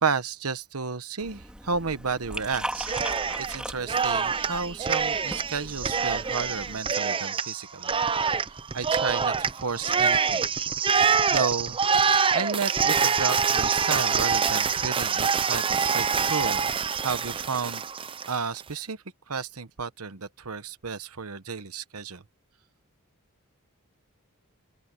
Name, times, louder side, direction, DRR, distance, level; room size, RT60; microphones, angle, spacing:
voice 1, 0.0-2.9 3.4-7.9 8.2-8.4 8.7-10.4 11.3-11.8 12.3-16.7 17.0-17.8 18.3-19.0 19.3-22.2, right 5 dB, 90° right, 1.2 m, -32 dB
Liquid, 1.2-6.8, right 1 dB, 5° right, 2.7 m, -39 dB
Cheering, 2.7-3.6 3.9-18.4, right 6 dB, 25° right, 0.6 m, -25 dB
open air
head